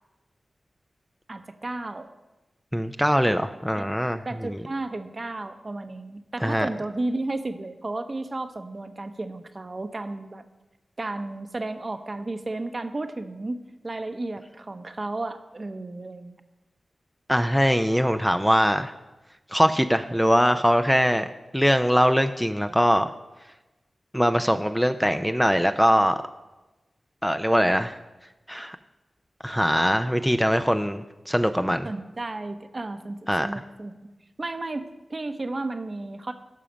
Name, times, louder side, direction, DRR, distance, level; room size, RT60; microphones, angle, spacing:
voice 1, 1.3-2.1 3.7-3.9 4.2-10.4 11.0-13.6 13.8-16.3 31.8-33.9 34.4-36.3, right 2 dB, 45° right, 8 dB, 0.9 m, -33 dB
voice 2, 2.7-4.6 6.4-6.7 17.3-18.9 19.5-23.1 24.1-26.2 27.2-28.0 28.5-28.8 29.4-31.9 33.3-33.6, equal, ahead, 8 dB, 0.5 m, -22 dB
12.5 x 5.7 x 5.1 m, 1.1 s
cardioid pair, 40°, 0 cm